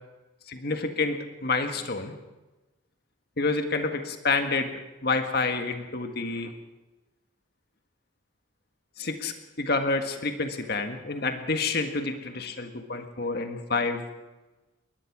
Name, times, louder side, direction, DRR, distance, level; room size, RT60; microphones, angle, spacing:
voice 1, 0.5-2.1 3.4-4.7 5.0-6.5 9.0-14.0, left 3 dB, 50° left, 6 dB, 1.7 m, -28 dB
22.0 x 20.0 x 6.1 m, 1.1 s
head